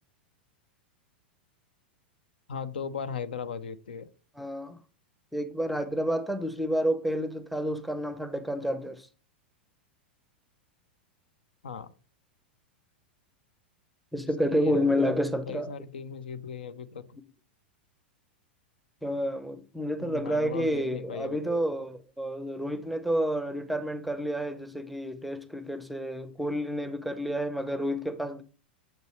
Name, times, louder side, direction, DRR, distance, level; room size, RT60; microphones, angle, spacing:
voice 1, 2.5-4.1 11.6-11.9 14.4-15.1 15.5-17.2 20.0-21.5, left 6 dB, 70° left, 0.6 m, -38 dB
voice 2, 4.4-4.8 5.3-9.1 14.1-15.7 19.0-28.4, equal, ahead, 0.6 m, -30 dB
7.5 x 5.3 x 3.1 m
figure-of-eight pair, 95°, 6 cm